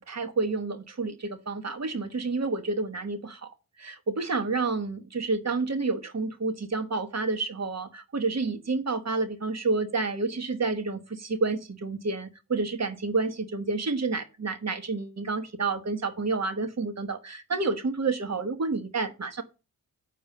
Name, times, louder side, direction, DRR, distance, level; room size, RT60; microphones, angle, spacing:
voice 1, 0.1-3.5 3.8-19.4, right 3 dB, 45° right, 1.3 m, -29 dB
6.9 x 4.6 x 6.7 m
cardioid pair, 45°, 38 cm